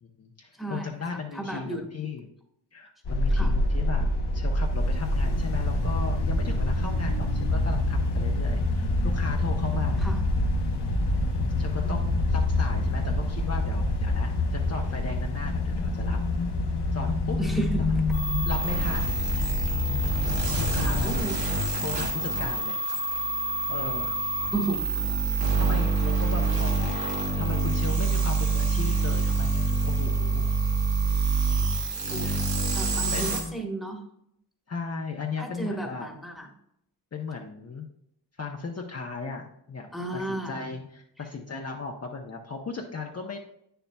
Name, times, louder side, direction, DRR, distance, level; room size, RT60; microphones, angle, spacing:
voice 1, 0.0-2.3 2.7-10.1 11.6-16.2 16.9-17.4 18.5-19.3 20.6-21.4 21.8-22.8 23.7-24.3 25.3-30.4 30.9-31.0 32.2-32.4 33.1-33.6 34.7-36.1 37.1-37.9 38.4-43.4, left 4 dB, 35° left, 1 dB, 0.8 m, -36 dB
voice 2, 1.3-1.8 3.4-3.5 10.0-10.2 11.8-12.1 17.4-18.0 20.8-21.3 24.5-25.0 27.0-27.1 32.1-32.3 32.7-34.0 35.4-36.5 39.9-40.6, right 2 dB, ahead, 1 dB, 1.2 m, -33 dB
sound 1, 3.0-21.2, left 2 dB, 70° left, 1.0 m, -26 dB
sound 2, 18.1-33.4, right 3 dB, 90° right, 1.9 m, -26 dB
8.8 x 6.8 x 2.3 m, 0.75 s
wide cardioid pair, 100°, 42 cm